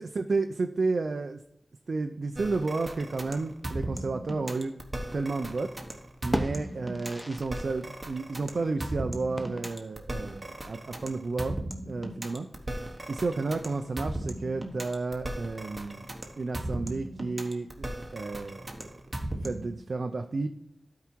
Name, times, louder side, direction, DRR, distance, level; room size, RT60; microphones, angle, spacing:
voice 1, 0.0-1.4 1.9-4.7 5.1-5.7 6.2-11.6 11.8-12.5 13.1-16.0 16.4-19.0 19.4-20.5, right 3 dB, 65° right, 5 dB, 0.5 m, -31 dB
sound 1, 2.3-19.8, right 1 dB, 25° right, 1.2 m, -37 dB
sound 2, 5.0-5.8 6.1-7.7 8.0-8.1 9.4-10.0, equal, 10° left, 0.7 m, -36 dB
12.0 x 4.8 x 4.5 m, 0.77 s
wide cardioid pair, 100°, 0 cm